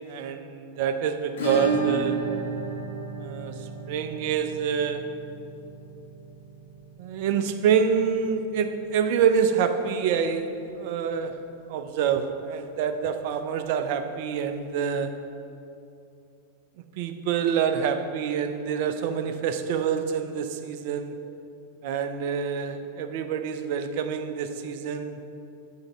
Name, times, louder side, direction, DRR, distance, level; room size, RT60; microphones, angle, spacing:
voice 1, 0.1-2.2 3.2-5.1 7.0-11.4 11.7-15.1 17.0-21.1 21.8-25.2, right 7 dB, 50° right, 8 dB, 0.4 m, -27 dB
Acoustic guitar / Strum, 1.4-10.0 10.2-10.3 10.6-10.7 11.1-11.2 13.2-13.3 14.5-14.6, right 3 dB, 60° left, 1.4 m, -33 dB
6.4 x 4.5 x 6.0 m, 2.7 s
figure-of-eight pair, 90°, 0 cm